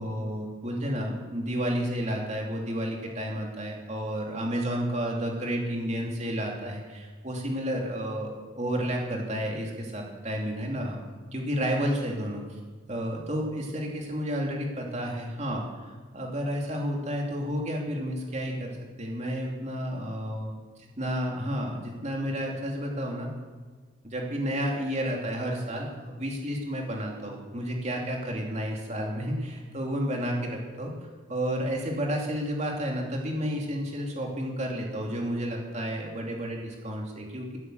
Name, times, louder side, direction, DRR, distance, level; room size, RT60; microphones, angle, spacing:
voice 1, 0.0-11.0 11.3-12.4 12.9-20.5 20.8-23.3 24.0-30.9 31.3-37.6, equal, 35° right, 0 dB, 2.8 m, -31 dB
16.5 x 9.3 x 7.9 m, 1.5 s
head